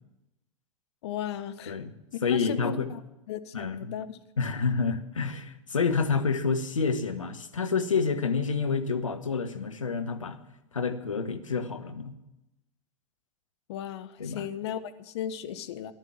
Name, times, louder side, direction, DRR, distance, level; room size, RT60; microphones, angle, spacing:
voice 1, 1.0-1.8 2.1-3.0 3.3-4.2 13.7-15.9, left 9 dB, 55° left, 10 dB, 1.0 m, -36 dB
voice 2, 2.2-2.9 3.5-3.9 4.4-10.4 10.7-12.1 14.2-14.4, left 5 dB, 80° left, 8 dB, 1.2 m, -28 dB
13.5 x 11.5 x 7.5 m, 0.93 s
figure-of-eight pair, 90°, 16 cm